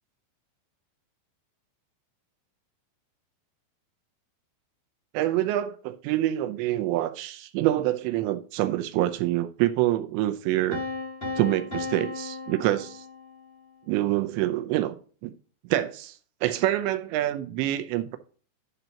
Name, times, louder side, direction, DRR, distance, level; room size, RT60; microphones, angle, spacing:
voice 1, 5.1-10.8 11.4-13.1 13.9-15.0 15.2-15.3 15.7-18.2, right 14 dB, 85° right, 2.6 m, -26 dB
Piano, 10.7-13.6, left 3 dB, 80° left, 0.5 m, -35 dB
11.5 x 4.0 x 5.7 m
omnidirectional pair, 5.7 m